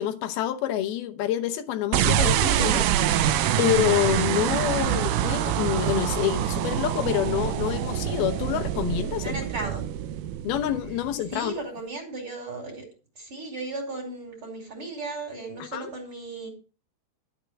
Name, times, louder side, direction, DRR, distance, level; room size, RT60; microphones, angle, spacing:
voice 1, 0.0-3.3 3.6-9.4 10.4-11.5 15.6-15.9, left 11 dB, 75° left, 2.7 m, -27 dB
sound 1, 1.9-11.3, right 11 dB, 80° right, 2.0 m, -25 dB
voice 2, 9.2-9.8 11.3-12.8 13.2-16.5, right 2 dB, 35° right, 3.8 m, -35 dB
12.0 x 6.9 x 5.9 m
omnidirectional pair, 4.7 m